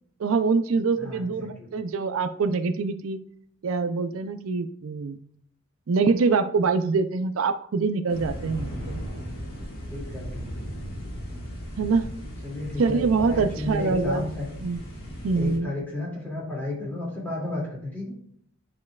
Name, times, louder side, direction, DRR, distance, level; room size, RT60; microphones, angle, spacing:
voice 1, 0.2-3.2 3.6-5.2 5.9-9.0 11.8-12.1 12.8-14.3 14.6-14.8 15.2-15.7, right 4 dB, 80° right, 9 dB, 0.4 m, -24 dB
voice 2, 1.0-1.7 9.9-10.5 12.4-13.0 13.3-14.5 15.3-18.1, left 2 dB, 10° left, -6 dB, 2.4 m, -33 dB
sound 1, 8.1-15.6, equal, 50° left, 1.9 m, -36 dB
10.5 x 4.3 x 2.3 m, 0.65 s
head